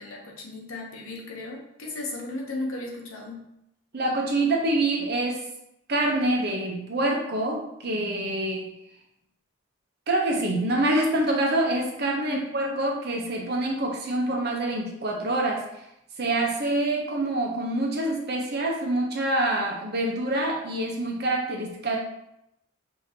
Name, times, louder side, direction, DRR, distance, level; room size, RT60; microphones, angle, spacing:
voice 1, 0.0-3.5 12.3-12.4, left 2 dB, 75° left, 0 dB, 0.9 m, -35 dB
voice 2, 3.9-5.5 5.9-8.7 10.1-15.6 16.2-22.0, right 1 dB, 50° right, 0 dB, 0.8 m, -26 dB
5.1 x 2.8 x 2.8 m, 0.81 s
head